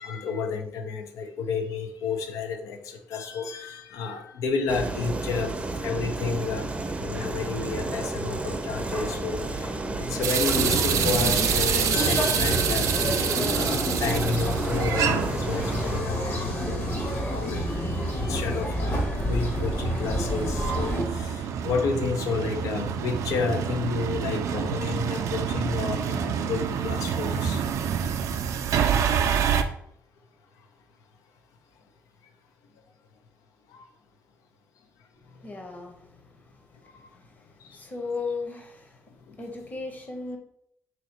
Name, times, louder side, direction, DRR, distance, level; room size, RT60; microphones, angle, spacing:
voice 1, 0.0-5.5 5.8-6.7 7.0-27.6 33.7-33.9 36.9-37.1 37.6-37.8 39.3-39.4, left 4 dB, 90° left, 5 dB, 0.6 m, -31 dB
sound 1, 4.7-16.0, right 2 dB, 20° right, 0.5 m, -32 dB
sound 2, 10.2-29.6, right 8 dB, 75° right, 0.4 m, -28 dB
sound 3, 10.5-21.0, equal, 45° left, 1.3 m, -29 dB
voice 2, 35.4-35.9 37.7-38.9 39.4-40.4, left 4 dB, 30° left, 3 dB, 1.0 m, -35 dB
3.2 x 2.9 x 4.3 m, 0.72 s
cardioid pair, 80°, 5 cm